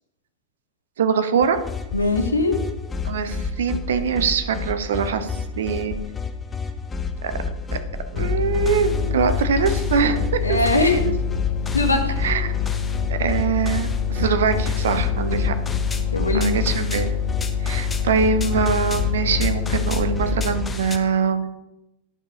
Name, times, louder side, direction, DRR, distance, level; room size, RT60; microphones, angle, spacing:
voice 1, 1.0-1.6 3.0-6.0 7.2-7.3 8.1-11.1 12.2-12.5 13.1-15.5 16.3-17.2 17.6-21.5, right 6 dB, 60° right, 9 dB, 0.7 m, -23 dB
sound 1, 1.4-21.0, left 4 dB, 15° left, 0.7 m, -30 dB
voice 2, 1.9-2.6 10.4-11.1 11.7-12.2 14.9-15.4 16.1-16.6, left 2 dB, 80° left, 5 dB, 1.1 m, -22 dB
sound 2, 8.1-20.5, left 7 dB, 60° left, 1.3 m, -26 dB
10.0 x 4.7 x 4.8 m, 0.90 s
figure-of-eight pair, 90°, 0 cm